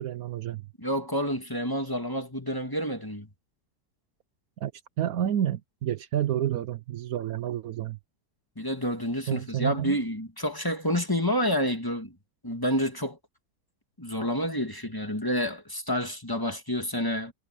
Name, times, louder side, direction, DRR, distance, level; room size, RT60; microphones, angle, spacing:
voice 1, 0.0-0.6 4.6-4.7 5.0-8.0 9.3-10.0, right 11 dB, 70° right, 1.1 m, -29 dB
voice 2, 0.8-3.3 8.6-12.1 12.4-13.2 14.0-17.3, equal, 15° left, 2.0 m, -29 dB
omnidirectional pair, 1.7 m